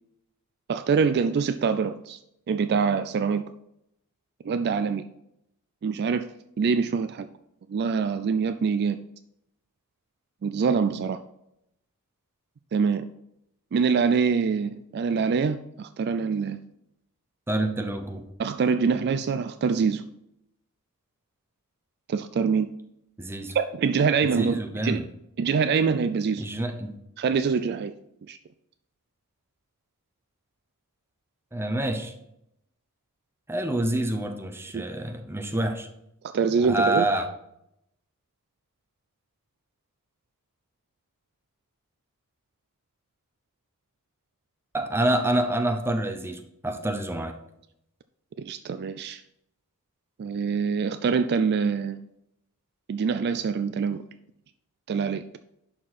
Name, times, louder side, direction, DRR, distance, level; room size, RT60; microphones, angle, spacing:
voice 1, 0.7-2.2 2.5-3.4 4.4-5.0 5.8-6.3 6.6-7.3 7.7-9.0 10.4-11.2 12.7-13.1 13.7-16.6 18.4-20.1 22.1-22.7 23.5-25.0 25.4-26.4 27.2-27.9 28.3-28.4 34.7-34.8 36.2-37.1 48.4-49.2 50.2-52.0 52.9-54.0 54.9-55.2, right 5 dB, 45° right, 11 dB, 0.3 m, -25 dB
voice 2, 17.5-18.2 23.2-23.6 24.2-25.1 26.4-27.0 31.5-32.1 33.5-35.9 36.7-37.3 44.7-47.4, right 1 dB, 10° right, 6 dB, 0.7 m, -27 dB
11.0 x 4.4 x 4.1 m, 0.80 s
head